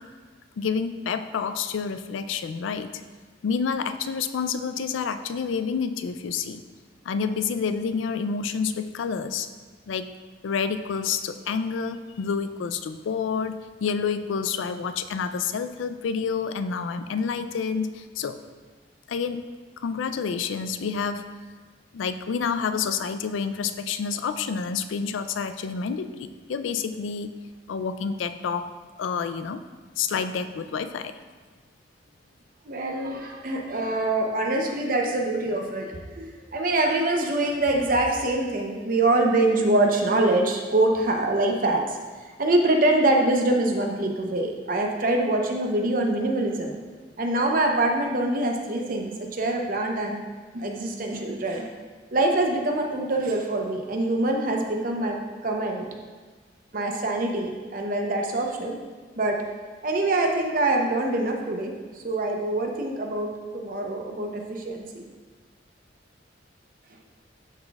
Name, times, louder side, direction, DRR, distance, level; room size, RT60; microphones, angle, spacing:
voice 1, 0.6-2.9 3.4-6.6 7.0-9.5 9.9-10.1 10.4-18.4 19.1-19.4 19.8-21.3 21.9-27.4 27.7-28.7 29.0-29.6 30.0-31.1, left 6 dB, 90° left, 11 dB, 0.4 m, -28 dB
voice 2, 32.7-42.0 42.4-46.8 47.2-50.2 50.5-51.7 52.1-55.9 56.7-58.8 59.2-59.4 59.8-65.0, right 2 dB, 45° right, 2 dB, 0.7 m, -24 dB
11.5 x 4.0 x 2.3 m, 1.4 s
head